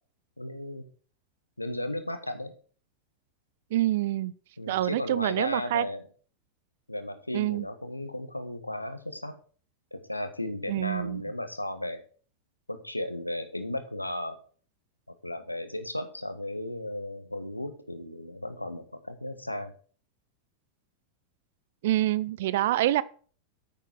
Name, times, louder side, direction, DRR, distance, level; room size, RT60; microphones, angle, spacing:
voice 1, 0.4-0.9 1.6-2.5 4.6-6.1 6.9-9.3 9.9-12.0 12.7-14.4 15.2-19.7, left 1 dB, 85° left, 1.4 m, -35 dB
voice 2, 3.7-4.3 4.7-5.8 7.3-7.7 10.7-11.2 21.8-23.0, right 14 dB, 55° right, 0.6 m, -26 dB
9.2 x 7.6 x 6.4 m
figure-of-eight pair, 90°, 0 cm